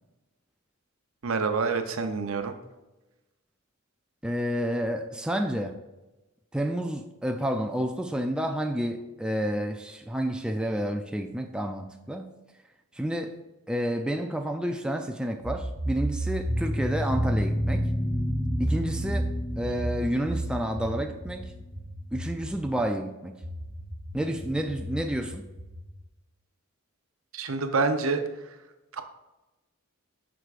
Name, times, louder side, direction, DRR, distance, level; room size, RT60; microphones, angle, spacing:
voice 1, 1.2-2.5 27.3-28.2 28.9-29.0, right 4 dB, 70° right, 0.7 m, -27 dB
voice 2, 4.2-5.8 6.5-12.3 12.9-13.4 13.7-17.9 18.6-21.5 22.1-23.4 24.1-25.5, equal, 5° right, 0.3 m, -30 dB
sound 1, 15.4-22.7 23.4-25.9, right 1 dB, 45° right, 1.2 m, -33 dB
sound 2, 16.5-21.6, left 1 dB, 30° left, 0.7 m, -31 dB
8.0 x 6.0 x 2.5 m
head